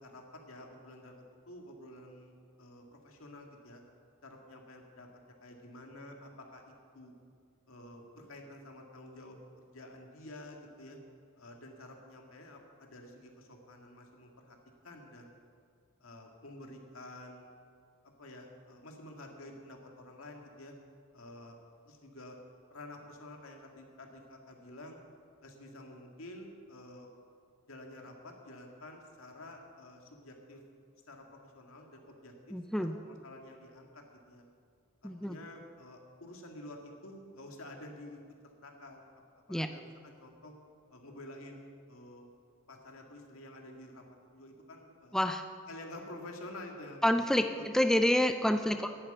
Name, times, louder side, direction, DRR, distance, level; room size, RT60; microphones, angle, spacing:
voice 1, 0.0-3.8 4.2-5.1 5.4-7.1 7.7-9.4 9.7-11.0 11.4-14.6 14.8-15.4 16.0-17.5 18.2-20.7 21.1-21.6 21.9-22.4 22.7-25.0 25.4-27.1 27.7-30.6 31.1-34.4 35.0-39.0 39.5-40.5 40.9-42.2 42.7-44.0 44.3-45.2 45.7-47.1 47.4-47.7, left 1 dB, 85° left, 2 dB, 2.0 m, -50 dB
voice 2, 32.5-33.0 35.0-35.4 39.5-39.7 45.1-45.5 47.0-48.9, left 1 dB, ahead, 7 dB, 0.4 m, -28 dB
11.0 x 8.9 x 9.1 m, 2.2 s
head